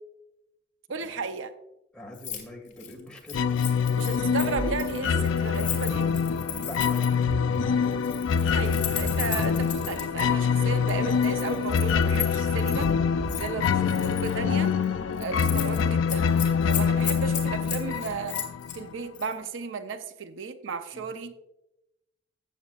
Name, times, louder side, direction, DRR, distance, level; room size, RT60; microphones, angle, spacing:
voice 1, 0.9-1.5 3.9-6.1 8.5-12.9 13.4-14.7 15.2-16.3 16.7-18.4 18.7-21.3, right 4 dB, 75° right, 10 dB, 0.6 m, -34 dB
voice 2, 1.9-3.4 6.5-7.1 7.7-8.0 20.9-21.0, left 1 dB, 5° left, -1 dB, 1.8 m, -43 dB
Keys jangling, 2.1-2.4 2.7-7.2 7.9-10.2 10.9-12.9 13.3-14.3 14.7-14.9 15.2-15.8 16.1-18.8 19.1-19.3, left 10 dB, 40° left, 1.8 m, -35 dB
sound 1, 3.3-18.8, left 6 dB, 75° left, 0.4 m, -25 dB
Ocean, 4.2-14.9, right 2 dB, 30° right, 0.3 m, -40 dB
14.0 x 8.4 x 2.4 m, 0.92 s
head